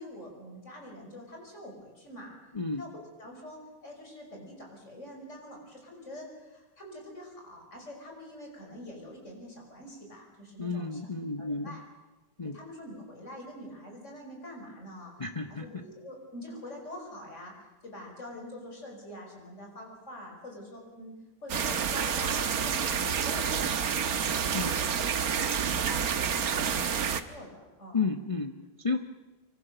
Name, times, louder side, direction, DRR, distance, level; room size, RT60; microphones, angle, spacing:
voice 1, 0.0-2.4 2.8-11.0 11.4-11.8 12.5-15.1 15.5-17.5 17.8-24.8 25.2-28.0, left 1 dB, 40° left, 1 dB, 6.2 m, -45 dB
voice 2, 2.5-2.8 10.6-11.8 12.4-12.6 15.2-15.8 24.5-24.8 27.9-29.0, left 4 dB, 25° left, 6 dB, 0.8 m, -32 dB
sound 1, 21.5-27.2, right 7 dB, 60° right, 1.6 m, -29 dB
26.0 x 24.0 x 6.9 m, 1.1 s
omnidirectional pair, 1.8 m